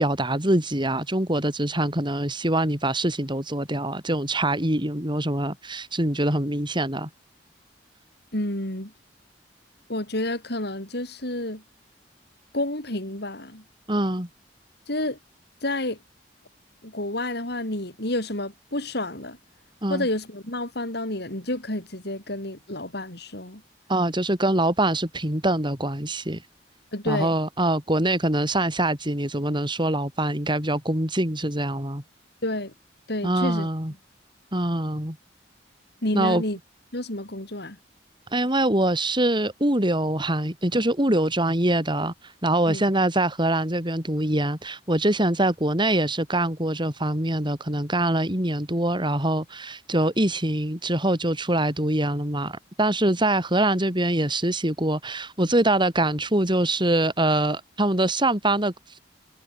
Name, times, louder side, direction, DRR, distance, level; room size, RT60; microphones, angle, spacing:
voice 1, 0.0-7.1 13.9-14.3 19.8-20.1 23.9-26.4 27.1-32.0 33.2-33.9 34.5-35.2 36.1-36.4 38.3-59.0, right 1 dB, 25° right, 7.6 m, -24 dB
voice 2, 8.3-8.9 9.9-11.6 12.5-13.6 14.9-15.2 15.6-16.0 16.8-19.4 19.9-23.6 26.9-27.3 32.4-32.7 33.1-33.7 36.0-36.6 36.9-37.8 42.7-42.9, left 1 dB, 65° left, 7.6 m, -29 dB
head